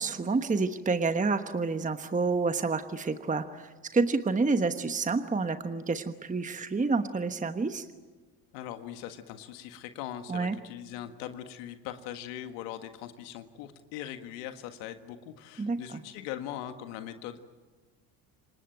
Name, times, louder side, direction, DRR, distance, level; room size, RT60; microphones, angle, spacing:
voice 1, 0.0-7.9 10.3-10.5 15.6-16.0, right 4 dB, 15° right, 9 dB, 1.2 m, -29 dB
voice 2, 8.5-17.4, left 11 dB, 80° left, 8 dB, 1.7 m, -41 dB
28.0 x 18.5 x 9.1 m, 1.3 s
supercardioid pair, 80°, 47 cm